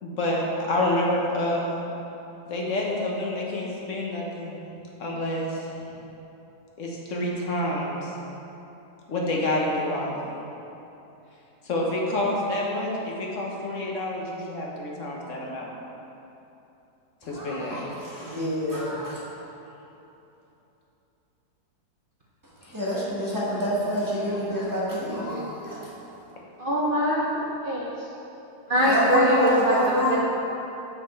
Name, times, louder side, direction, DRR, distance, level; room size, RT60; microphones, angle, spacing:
voice 1, 0.0-1.8 2.5-4.6 5.0-5.9 6.8-8.1 9.1-10.2 11.6-15.7 17.2-17.8 18.1-18.3 22.6-22.7, left 1 dB, 55° left, -3 dB, 1.4 m, -28 dB
voice 2, 17.3-17.8 18.1-19.2 22.7-25.9 28.8-30.2, equal, 15° right, -7 dB, 1.3 m, -26 dB
voice 3, 26.6-27.9 28.7-29.7 30.1-30.2, equal, 55° right, -5 dB, 0.6 m, -23 dB
6.5 x 6.0 x 4.5 m, 2.9 s
omnidirectional pair, 1.7 m